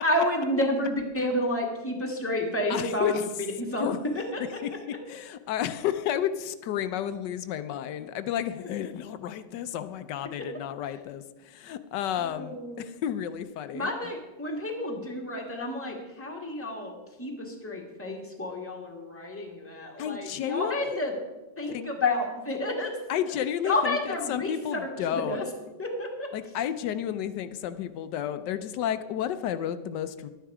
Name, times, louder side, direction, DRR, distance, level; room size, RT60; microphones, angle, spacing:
voice 1, 0.0-3.9 4.1-4.4 8.6-8.7 10.4-10.5 12.2-12.9 13.7-21.1 21.6-23.0 23.6-25.4 25.8-26.3, left 1 dB, 10° left, 0 dB, 1.6 m, -30 dB
voice 2, 2.7-3.3 3.8-4.0 4.6-4.7 5.1-13.9 20.0-21.0 21.7-21.9 23.1-25.4 26.3-30.3, left 10 dB, 80° left, 12 dB, 1.3 m, -31 dB
12.0 x 9.2 x 4.8 m, 1.1 s
omnidirectional pair, 1.9 m